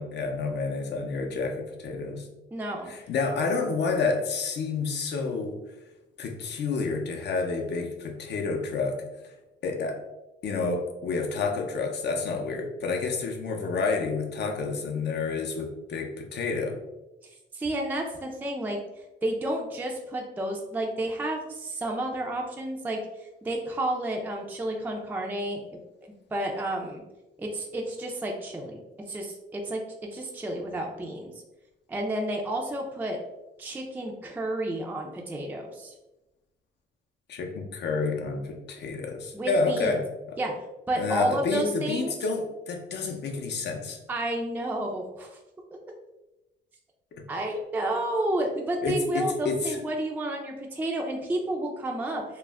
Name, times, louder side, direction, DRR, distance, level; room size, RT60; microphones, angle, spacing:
voice 1, 0.0-2.3 2.9-5.6 6.2-9.3 9.6-10.0 10.4-16.8 37.3-40.4 41.0-44.0 47.2-47.3 48.8-49.8, left 4 dB, 60° left, 3 dB, 0.6 m, -29 dB
voice 2, 2.5-2.9 17.5-18.8 19.2-25.8 26.3-27.0 27.4-28.8 29.1-29.8 30.1-31.3 31.9-33.2 33.6-35.9 39.3-40.0 40.4-40.5 40.9-42.1 44.1-45.4 47.3-52.4, right 1 dB, 10° right, 1 dB, 0.4 m, -31 dB
2.3 x 2.0 x 3.3 m, 0.99 s
cardioid pair, 90°, 20 cm